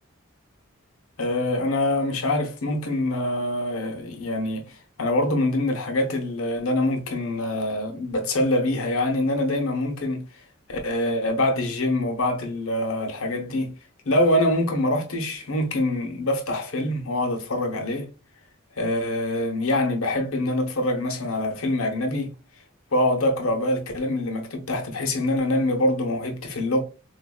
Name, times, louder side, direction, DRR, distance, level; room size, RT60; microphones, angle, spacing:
voice 1, 1.2-10.3 10.7-13.7 14.0-18.1 18.8-22.3 22.9-26.8, left 1 dB, 75° left, 0.9 m, -25 dB
3.9 x 2.6 x 2.2 m
head